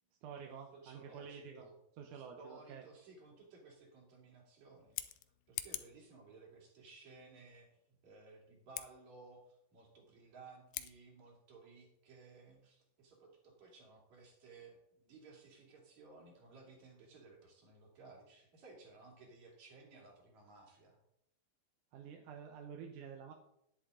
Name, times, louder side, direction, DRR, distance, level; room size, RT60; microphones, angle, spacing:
voice 1, 0.2-1.7 2.0-2.8 21.9-23.3, right 7 dB, 75° right, 3 dB, 2.2 m, -49 dB
voice 2, 0.7-1.8 2.1-5.2 5.5-21.0, right 3 dB, 55° right, -1 dB, 4.0 m, -58 dB
Scissors, 4.8-6.0 8.7-8.9 10.7-10.9, left 15 dB, 85° left, 2.4 m, -43 dB
10.5 x 10.0 x 3.8 m, 0.78 s
omnidirectional pair, 4.0 m